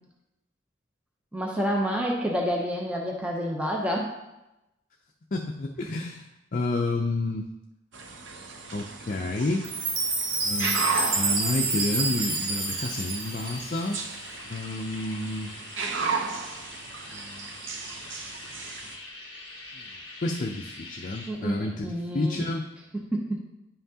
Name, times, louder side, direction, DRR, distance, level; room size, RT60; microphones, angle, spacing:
voice 1, 1.3-4.1 21.3-22.4 23.1-23.4, equal, 5° right, -1 dB, 0.7 m, -28 dB
voice 2, 5.3-7.5 8.7-9.7 10.4-14.0 14.4-15.5 17.1-17.5 19.7-19.9 20.2-22.6, left 2 dB, 40° left, 1 dB, 0.5 m, -30 dB
sound 1, 7.9-19.0, right 5 dB, 70° right, 0.8 m, -35 dB
Chime, 9.6-13.9, right 3 dB, 45° right, 1.1 m, -28 dB
sound 2, 10.7-21.3, left 2 dB, 25° left, 1.5 m, -44 dB
10.0 x 5.6 x 2.8 m, 0.95 s
head